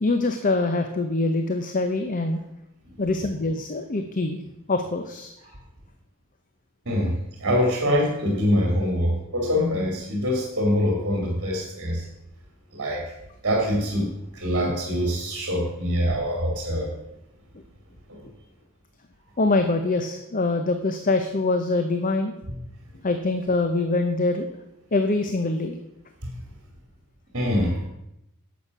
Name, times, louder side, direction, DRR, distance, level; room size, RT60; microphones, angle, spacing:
voice 1, 0.0-2.4 3.0-4.4 4.7-5.3 19.4-22.3 23.0-24.5 24.9-25.8, left 2 dB, 40° left, 7 dB, 0.7 m, -24 dB
voice 2, 7.4-12.0 12.7-13.0 13.4-14.1 14.3-16.9 18.1-18.2 26.2-26.3 27.3-27.8, equal, 55° right, 0 dB, 2.6 m, -24 dB
11.0 x 7.3 x 6.1 m, 0.85 s
head